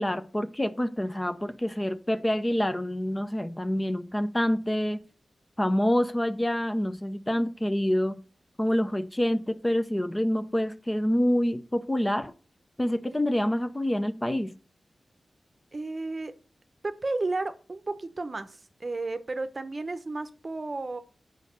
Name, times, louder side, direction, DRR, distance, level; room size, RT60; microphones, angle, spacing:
voice 1, 0.0-5.0 5.6-8.2 8.6-12.3 12.8-14.5, left 1 dB, 15° left, 0.6 m, -27 dB
voice 2, 15.7-16.3 16.8-21.0, right 3 dB, 35° right, 0.8 m, -33 dB
6.3 x 5.3 x 6.6 m
wide cardioid pair, 95°, 0 cm